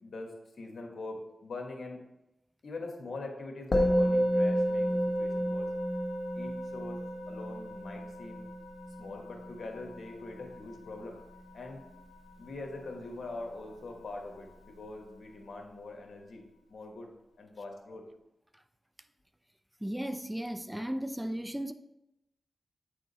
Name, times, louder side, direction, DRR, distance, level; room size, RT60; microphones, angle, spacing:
voice 1, 0.0-2.0 2.6-5.7 6.3-8.5 9.0-11.2 11.5-11.8 12.4-16.4 16.7-17.1 17.4-18.1, left 2 dB, 70° left, 1.4 m, -43 dB
Musical instrument, 3.7-13.2, equal, 45° left, 1.1 m, -32 dB
voice 2, 19.8-21.7, right 1 dB, 10° right, 0.3 m, -35 dB
8.6 x 3.6 x 4.1 m
cardioid pair, 65°, 0 cm